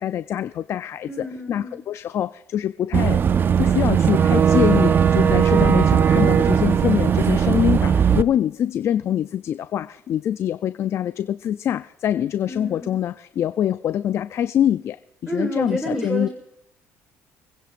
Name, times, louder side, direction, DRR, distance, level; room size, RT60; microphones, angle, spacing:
voice 1, 0.0-3.2 3.6-15.0 15.2-16.3, left 10 dB, 50° left, 12 dB, 0.4 m, -24 dB
voice 2, 1.1-1.8 12.5-13.0 15.3-16.3, equal, 10° right, 4 dB, 1.8 m, -29 dB
Boat Water vehicle / Engine, 2.9-8.2, right 8 dB, 40° right, 0.5 m, -18 dB
25.0 x 10.0 x 2.5 m, 0.79 s
supercardioid pair, 85°, 6 cm